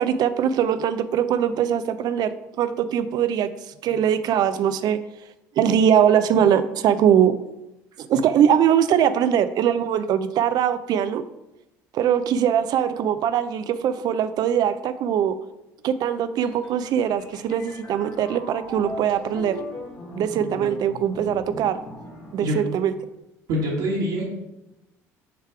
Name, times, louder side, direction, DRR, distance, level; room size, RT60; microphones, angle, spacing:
voice 1, 0.0-3.5 3.8-5.0 5.6-7.3 8.0-11.2 11.9-15.4 15.8-19.6 20.1-21.8 22.3-22.9, right 9 dB, 60° right, 12 dB, 0.5 m, -21 dB
sound 1, 16.4-23.1, left 1 dB, 65° left, 2.0 m, -39 dB
voice 2, 23.5-24.3, equal, 75° right, -8 dB, 1.8 m, -25 dB
6.8 x 3.3 x 5.7 m, 0.93 s
supercardioid pair, 70°, 8 cm